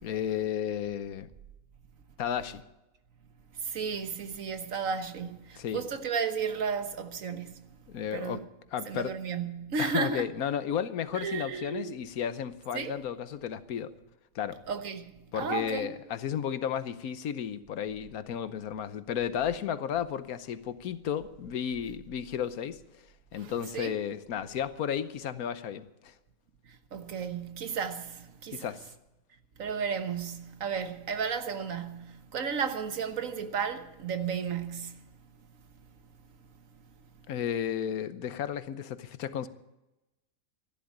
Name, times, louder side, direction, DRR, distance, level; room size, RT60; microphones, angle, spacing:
voice 1, 0.0-1.3 2.2-2.6 5.6-5.8 7.9-8.4 8.7-9.2 9.8-13.9 14.3-14.6 15.3-22.8 23.3-26.1 28.5-28.9 37.3-39.5, left 9 dB, 85° left, 1.3 m, -33 dB
voice 2, 3.6-7.7 8.1-8.5 8.9-10.3 11.1-11.9 12.7-13.0 14.7-15.9 23.3-24.0 26.6-28.7 29.6-35.1, right 6 dB, 70° right, 1.6 m, -33 dB
13.5 x 11.5 x 8.7 m
omnidirectional pair, 1.5 m